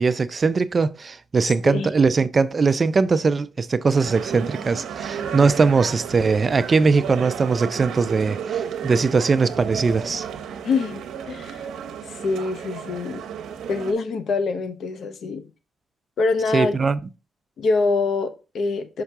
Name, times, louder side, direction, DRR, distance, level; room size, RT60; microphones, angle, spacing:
voice 1, 0.0-10.3 16.5-17.0, right 4 dB, 35° right, 0.4 m, -20 dB
sound 1, 4.0-13.9, right 8 dB, 85° right, 0.8 m, -33 dB
voice 2, 10.6-11.7 12.0-13.2 13.7-15.5 16.2-16.8 17.6-19.0, left 4 dB, 65° left, 0.8 m, -25 dB
5.9 x 5.6 x 3.5 m
cardioid pair, 105°, 0 cm